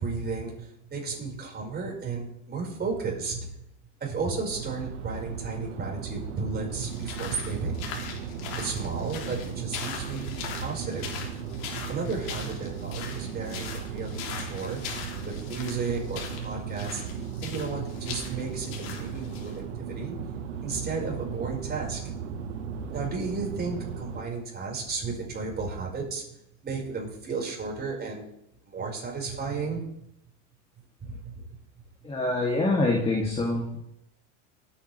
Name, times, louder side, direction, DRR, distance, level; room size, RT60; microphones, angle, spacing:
voice 1, 0.0-3.5 4.0-7.8 8.5-10.3 10.5-11.2 11.9-14.9 15.3-17.0 17.4-20.2 20.6-22.1 22.7-26.2 26.6-28.2 28.6-29.8 31.0-31.5, right 4 dB, 25° right, -1 dB, 5.5 m, -33 dB
sound 1, 4.5-24.2, right 7 dB, 85° right, 1.5 m, -36 dB
sound 2, 6.8-19.6, left 7 dB, 65° left, 3.3 m, -40 dB
voice 2, 32.0-33.8, left 2 dB, 15° left, -2 dB, 2.7 m, -25 dB
21.0 x 9.2 x 3.5 m, 0.79 s
supercardioid pair, 105°, 35 cm